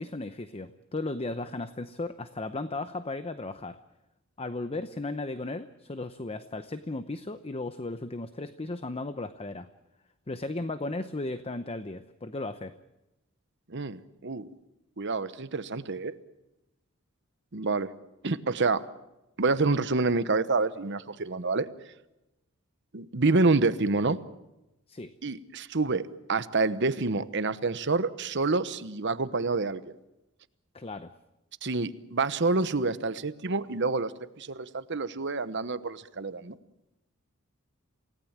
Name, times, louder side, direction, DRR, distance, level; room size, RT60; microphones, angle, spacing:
voice 1, 0.0-3.8 4.4-9.7 10.3-12.7 24.9-25.1 30.7-31.1, left 2 dB, 30° left, 11 dB, 0.7 m, -35 dB
voice 2, 13.7-14.5 15.0-16.1 17.5-17.9 18.2-18.9 19.4-21.7 22.9-24.2 25.2-29.9 31.6-34.1 34.4-36.6, right 3 dB, 55° right, 13 dB, 1.0 m, -27 dB
28.0 x 17.5 x 7.4 m, 0.94 s
head